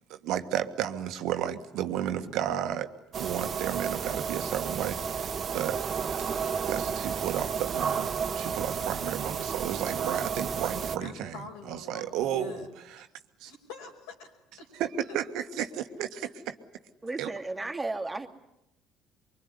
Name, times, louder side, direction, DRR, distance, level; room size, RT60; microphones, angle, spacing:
voice 1, 0.1-2.9 3.2-5.8 6.7-11.4 11.7-12.6 12.9-13.1 13.4-13.5 14.8-15.7 16.0-16.5 17.2-17.3, right 10 dB, 65° right, 8 dB, 1.6 m, -32 dB
sound 1, 3.1-11.0, right 6 dB, 45° right, 1.3 m, -32 dB
voice 2, 11.0-12.7 13.4-14.7 15.1-15.2, left 4 dB, 75° left, 2 dB, 5.3 m, -45 dB
voice 3, 17.0-18.3, right 2 dB, 15° right, 4 dB, 2.6 m, -34 dB
24.0 x 23.5 x 9.9 m, 0.85 s
hypercardioid pair, 60°, 0 cm